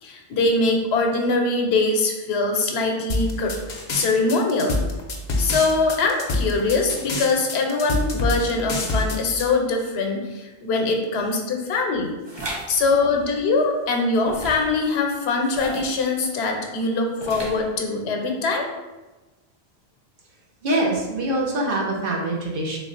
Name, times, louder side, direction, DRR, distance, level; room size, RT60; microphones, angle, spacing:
voice 1, 0.0-3.5 3.9-4.8 5.4-12.1 12.7-18.6, left 3 dB, 80° left, 2 dB, 0.9 m, -22 dB
sound 1, 3.1-9.4, left 2 dB, 55° left, 0.6 m, -25 dB
sound 2, 12.2-12.7 14.2-14.7 15.4-16.0 17.2-17.7, right 1 dB, 30° right, 0.7 m, -34 dB
voice 2, 20.6-22.8, right 1 dB, 60° right, -2 dB, 0.9 m, -24 dB
3.7 x 2.3 x 3.8 m, 1.2 s
omnidirectional pair, 1.1 m